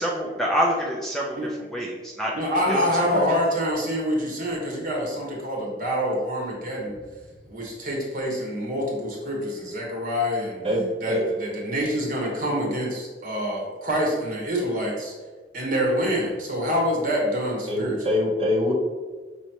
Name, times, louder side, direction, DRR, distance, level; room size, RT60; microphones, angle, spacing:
voice 1, 0.0-2.3 2.7-3.1, equal, 5° left, -3 dB, 0.5 m, -27 dB
voice 2, 2.3-7.0 7.5-10.6 11.0-15.1 15.5-18.0, equal, 50° right, -2 dB, 1.3 m, -26 dB
voice 3, 10.6-11.3 17.7-18.7, left 1 dB, 35° right, -3 dB, 0.9 m, -24 dB
5.5 x 3.1 x 2.9 m, 1.4 s
head